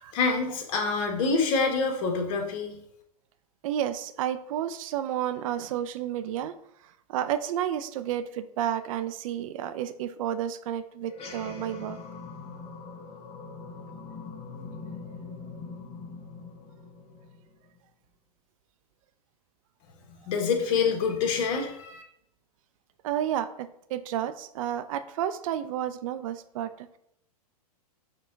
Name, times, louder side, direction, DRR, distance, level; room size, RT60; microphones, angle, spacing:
voice 1, 0.1-2.8 20.3-22.0, left 5 dB, 55° left, 3 dB, 1.0 m, -26 dB
voice 2, 3.6-6.5 6.8-12.0 23.0-26.9, right 10 dB, 55° right, 12 dB, 0.4 m, -31 dB
sound 1, 11.0-17.8, left 4 dB, 30° left, 0.9 m, -42 dB
5.0 x 2.3 x 3.7 m, 0.76 s
hypercardioid pair, 115°, 20 cm